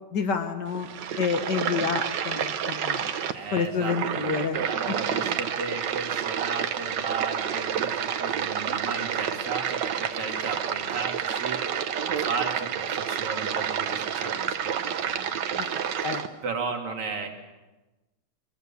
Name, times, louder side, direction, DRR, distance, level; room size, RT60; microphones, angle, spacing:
voice 1, 0.1-0.9 1.2-3.1 3.5-4.6 4.9-5.2 15.5-15.7 16.0-16.2, left 6 dB, 55° left, 7 dB, 1.9 m, -29 dB
sound 1, 0.7-16.3, right 8 dB, 60° right, 1.5 m, -29 dB
voice 2, 3.3-4.3 4.6-16.1 16.4-17.3, right 4 dB, 85° right, 3 dB, 3.2 m, -35 dB
23.0 x 21.5 x 7.0 m, 1.1 s
omnidirectional pair, 2.4 m